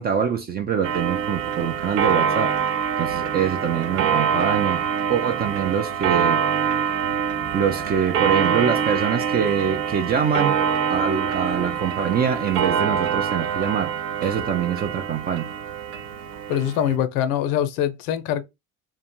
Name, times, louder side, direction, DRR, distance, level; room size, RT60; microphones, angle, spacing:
voice 1, 0.0-2.5 3.0-6.4 7.5-10.6 10.9-14.0 14.2-15.5, right 7 dB, 25° right, 0.3 m, -24 dB
Clock, 0.8-17.0, right 7 dB, 70° right, 0.6 m, -25 dB
voice 2, 16.5-18.4, left 10 dB, 65° left, 0.6 m, -23 dB
2.4 x 2.2 x 2.8 m
hypercardioid pair, 60°, 45 cm